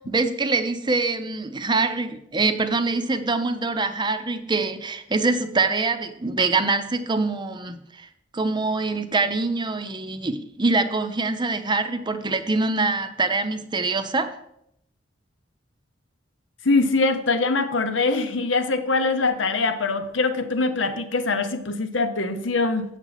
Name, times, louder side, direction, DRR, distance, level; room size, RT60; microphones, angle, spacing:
voice 1, 0.0-8.1 8.3-14.3, right 3 dB, 25° right, 9 dB, 0.6 m, -24 dB
voice 2, 16.6-22.8, left 3 dB, 85° left, 8 dB, 0.9 m, -23 dB
8.1 x 7.1 x 4.0 m, 0.76 s
head